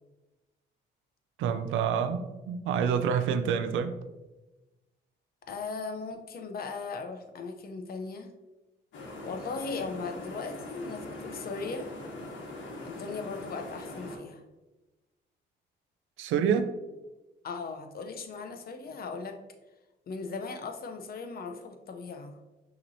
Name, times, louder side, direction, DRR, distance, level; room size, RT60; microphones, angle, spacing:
voice 1, 1.4-4.0 16.2-16.7, right 7 dB, 85° right, 8 dB, 0.4 m, -27 dB
voice 2, 5.5-8.3 9.2-11.9 12.8-14.4 17.4-19.4 20.1-22.3, left 4 dB, 50° left, 5 dB, 0.7 m, -38 dB
sound 1, 8.9-14.2, left 2 dB, 75° left, 1.1 m, -42 dB
5.8 x 3.0 x 2.7 m, 1.1 s
cardioid pair, 90°, 20 cm